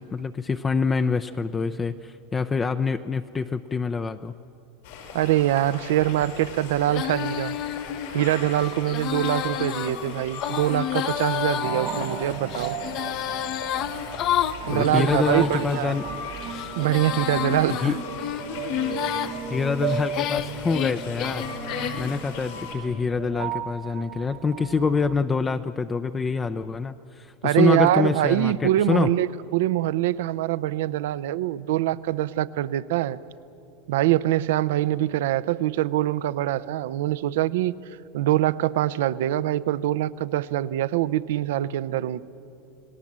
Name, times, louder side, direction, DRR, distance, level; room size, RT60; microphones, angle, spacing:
voice 1, 0.0-4.3 14.7-16.0 17.7-18.0 19.5-21.5 22.0-29.1, left 4 dB, 20° left, 8 dB, 0.5 m, -26 dB
sound 1, 4.8-22.7, left 5 dB, 80° left, 5.4 m, -39 dB
voice 2, 5.1-7.6 8.1-12.8 14.7-16.0 16.8-17.9 27.4-29.3 29.5-33.2 33.9-37.8 38.1-42.3, right 13 dB, 80° right, 16 dB, 0.6 m, -24 dB
Female singing, 6.9-15.8 16.4-19.3 19.9-22.2, left 11 dB, 50° left, 0.9 m, -30 dB
sound 2, 11.6-25.2, right 8 dB, 60° right, 1.7 m, -36 dB
28.5 x 18.5 x 7.4 m, 2.8 s
supercardioid pair, 120°, 0 cm